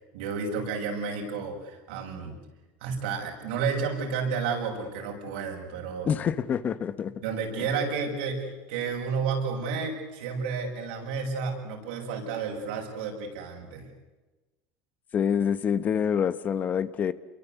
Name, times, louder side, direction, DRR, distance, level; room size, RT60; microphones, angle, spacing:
voice 1, 0.1-2.4 2.8-6.1 7.2-13.9, right 5 dB, 90° right, 1 dB, 7.3 m, -31 dB
voice 2, 6.0-7.1 15.1-17.1, left 7 dB, 30° left, 14 dB, 1.1 m, -26 dB
28.5 x 23.0 x 8.3 m, 1.2 s
cardioid pair, 140°, 5 cm